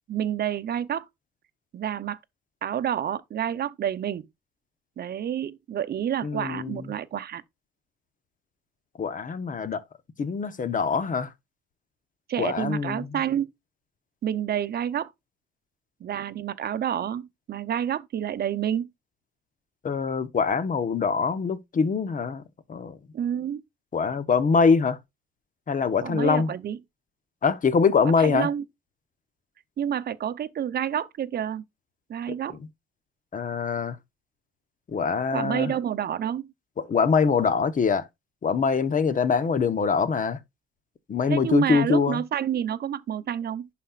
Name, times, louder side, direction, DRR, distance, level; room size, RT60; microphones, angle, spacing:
voice 1, 0.1-1.1 1.7-2.2 2.6-4.3 5.0-7.4 12.3-13.5 14.2-15.1 16.0-18.9 23.1-23.6 26.0-26.8 28.2-28.6 29.8-31.6 32.1-32.6 35.3-36.5 41.3-43.7, right 9 dB, 55° right, 0.7 m, -29 dB
voice 2, 6.2-6.8 9.0-9.8 10.2-11.3 12.4-13.1 19.8-22.4 22.7-23.0 23.9-25.0 25.7-26.5 27.4-28.5 33.3-34.0 34.9-35.7 36.8-38.1 38.4-40.4 41.1-42.2, left 5 dB, 40° left, 1.0 m, -23 dB
11.0 x 4.2 x 2.4 m
cardioid pair, 90°, 20 cm